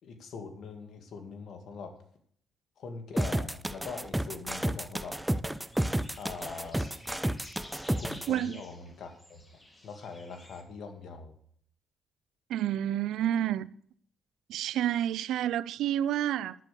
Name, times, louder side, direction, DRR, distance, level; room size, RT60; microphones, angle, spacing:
voice 1, 0.0-1.9 2.8-5.2 6.2-6.9 8.0-9.4 9.8-11.3, left 5 dB, 65° left, 2.1 m, -42 dB
sound 1, 3.2-8.3, right 1 dB, 5° right, 0.5 m, -31 dB
sound 2, 5.5-10.6, left 1 dB, 15° left, 2.0 m, -52 dB
voice 2, 8.3-8.6 12.5-13.7 14.5-16.6, right 11 dB, 80° right, 0.4 m, -29 dB
10.5 x 7.0 x 6.9 m
cardioid pair, 90°, 0 cm